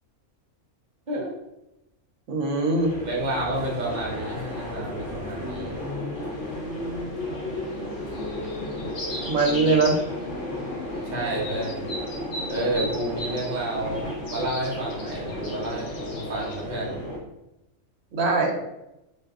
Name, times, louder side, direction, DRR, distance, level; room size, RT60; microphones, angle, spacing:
voice 1, 2.3-2.9 9.2-10.0 18.1-18.5, right 3 dB, 70° right, 1 dB, 1.0 m, -21 dB
sound 1, 2.8-17.2, left 1 dB, 50° left, 1.0 m, -34 dB
voice 2, 3.0-5.8 11.0-11.8 12.5-17.0, right 1 dB, 40° right, -4 dB, 0.7 m, -30 dB
sound 2, 6.3-16.6, left 1 dB, 75° left, 1.1 m, -39 dB
2.7 x 2.3 x 3.4 m, 0.90 s
omnidirectional pair, 1.4 m